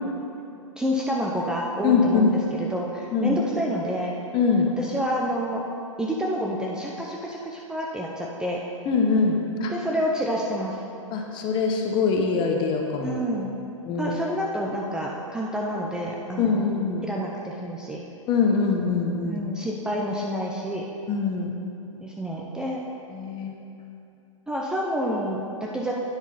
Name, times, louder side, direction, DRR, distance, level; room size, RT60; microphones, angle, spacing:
voice 1, 0.8-2.3 2.6-4.1 4.8-5.6 6.0-8.6 9.7-10.8 13.0-13.6 14.0-16.7 17.0-18.0 19.2-20.8 22.0-22.8 24.5-25.9, equal, 5° right, -3 dB, 0.5 m, -28 dB
voice 2, 1.8-2.3 3.1-3.4 4.3-4.7 8.9-9.7 11.1-13.2 13.8-14.2 16.4-17.1 18.3-19.4 21.1-21.5 23.1-23.5, left 5 dB, 30° left, 2 dB, 0.9 m, -23 dB
9.8 x 5.8 x 4.1 m, 2.7 s
hypercardioid pair, 120°, 17 cm